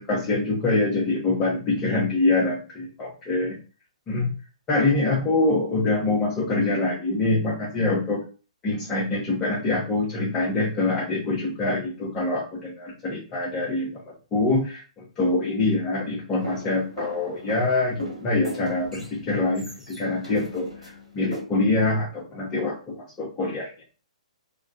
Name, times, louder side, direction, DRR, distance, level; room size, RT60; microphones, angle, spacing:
voice 1, 0.0-3.6 4.1-4.3 4.7-8.2 8.6-23.7, left 2 dB, 20° left, -5 dB, 0.7 m, -25 dB
sound 1, 16.4-21.4, right 1 dB, 90° right, 1.0 m, -39 dB
2.2 x 2.1 x 2.6 m, 0.35 s
figure-of-eight pair, 120°, 4 cm